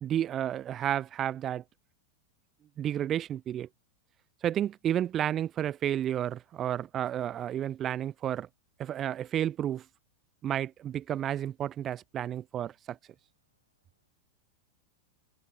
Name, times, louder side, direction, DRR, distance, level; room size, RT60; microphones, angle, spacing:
voice 1, 0.0-1.6 2.8-3.7 4.4-8.5 8.8-9.9 10.4-13.0, right 10 dB, 30° right, 0.4 m, -31 dB
voice 2, 13.4-14.1, right 4 dB, 80° right, 5.9 m, -83 dB
figure-of-eight pair, 90°, 0 cm